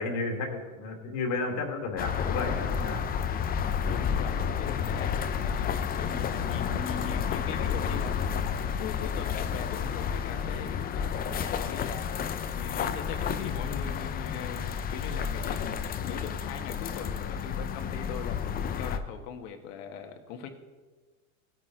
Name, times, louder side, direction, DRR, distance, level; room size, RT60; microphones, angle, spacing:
voice 1, 0.0-3.0, left 3 dB, 45° left, 3 dB, 2.2 m, -32 dB
sound 1, 2.0-19.0, left 7 dB, 20° left, 0.6 m, -31 dB
voice 2, 3.8-8.4 8.8-12.2 12.6-20.6, left 7 dB, 60° left, 6 dB, 1.6 m, -40 dB
16.5 x 9.2 x 3.8 m, 1.3 s
supercardioid pair, 120°, 43 cm